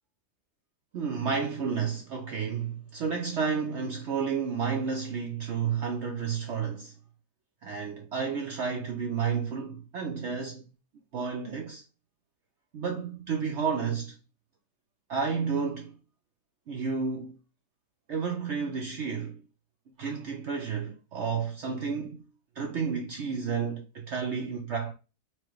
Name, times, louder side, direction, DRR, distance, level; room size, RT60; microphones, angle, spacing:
voice 1, 0.9-6.9 7.6-10.6 11.1-11.8 12.7-14.2 15.1-16.0 16.7-17.4 18.1-19.4 20.0-22.2 22.6-24.9, right 6 dB, 70° right, 0.6 m, -31 dB
4.4 x 2.2 x 3.0 m
omnidirectional pair, 1.7 m